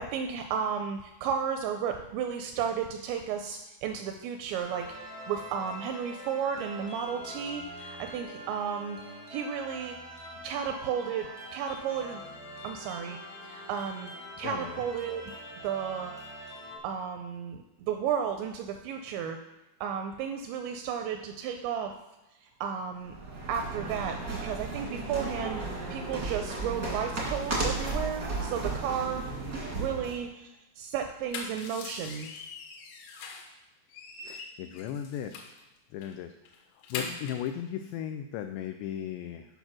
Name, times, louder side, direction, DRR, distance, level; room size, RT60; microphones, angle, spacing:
voice 1, 0.0-10.0 10.4-12.2 12.6-14.1 14.4-15.2 15.6-16.1 16.8-19.4 19.8-21.9 22.4-23.2 23.5-29.3 29.7-30.5 30.8-32.3, right 7 dB, 85° right, 6 dB, 2.6 m, -33 dB
sound 1, 4.6-16.8, equal, 20° left, 0.5 m, -44 dB
voice 2, 14.4-14.8 34.2-35.6 35.9-36.3 36.7-39.5, left 10 dB, 90° left, 7 dB, 2.5 m, -37 dB
sound 2, 23.0-30.2, right 3 dB, 70° right, 0.8 m, -34 dB
sound 3, 31.1-33.6 33.9-35.6 36.0-36.2 36.5-37.5, left 5 dB, 75° left, 3.4 m, -41 dB
9.0 x 5.3 x 6.1 m, 1.0 s
omnidirectional pair, 5.6 m